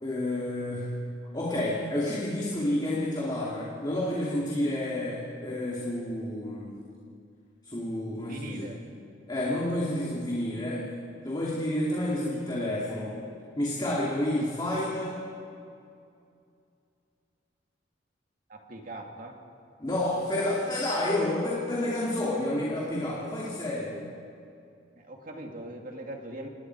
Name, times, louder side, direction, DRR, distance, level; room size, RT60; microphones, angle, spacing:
voice 1, 0.0-1.0 1.3-6.7 7.6-8.7 9.3-10.9 11.2-13.2 13.6-15.2 19.8-24.1, left 1 dB, 25° left, -5 dB, 2.7 m, -30 dB
voice 2, 8.3-8.8 18.5-19.4 25.0-26.5, right 1 dB, 50° right, 2 dB, 2.4 m, -41 dB
28.5 x 20.0 x 4.7 m, 2.5 s
head